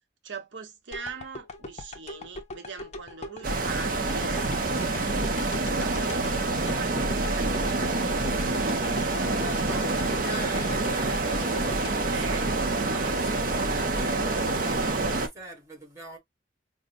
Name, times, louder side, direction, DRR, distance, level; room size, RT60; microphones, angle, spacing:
voice 1, 0.2-4.5 5.3-8.0 8.6-10.0 12.1-12.5, right 5 dB, 85° right, 0.8 m, -42 dB
sound 1, 0.9-13.1 13.5-13.6, left 2 dB, 35° left, 0.6 m, -41 dB
sound 2, 3.4-15.3, right 2 dB, 50° right, 0.6 m, -27 dB
voice 2, 9.1-16.2, right 1 dB, 15° right, 1.5 m, -43 dB
5.1 x 2.0 x 2.5 m
head